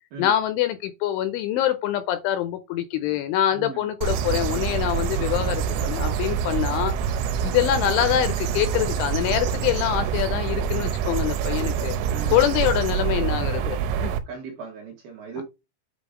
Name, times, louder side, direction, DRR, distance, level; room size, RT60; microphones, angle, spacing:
voice 1, 0.2-6.9 7.4-12.0 12.3-14.1 15.4-15.5, left 12 dB, 80° left, 2.9 m, -25 dB
sound 1, 4.0-14.2, right 7 dB, 85° right, 3.3 m, -26 dB
voice 2, 12.1-12.4 14.3-15.4, right 5 dB, 65° right, 2.4 m, -37 dB
8.4 x 2.8 x 5.0 m
omnidirectional pair, 5.9 m